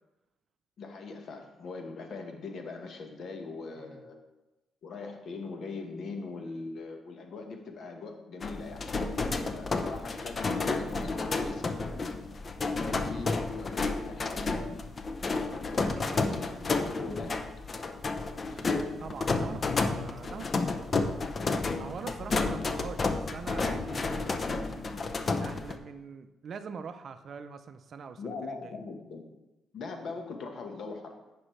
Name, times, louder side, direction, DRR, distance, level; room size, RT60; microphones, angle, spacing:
voice 1, 0.8-4.2 4.8-8.9 9.5-12.0 12.9-14.5 15.7-17.5 18.5-18.7 28.2-29.3 29.7-31.1, left 4 dB, 60° left, 4 dB, 1.2 m, -41 dB
voice 2, 3.8-4.1 13.0-13.2 15.7-16.3 18.5-18.6 19.0-20.8 21.8-28.7, right 6 dB, 55° right, 11 dB, 0.5 m, -44 dB
sound 1, 8.4-25.8, left 3 dB, 40° left, 0.6 m, -31 dB
9.7 x 5.2 x 3.1 m, 1.0 s
cardioid pair, 90°, 0 cm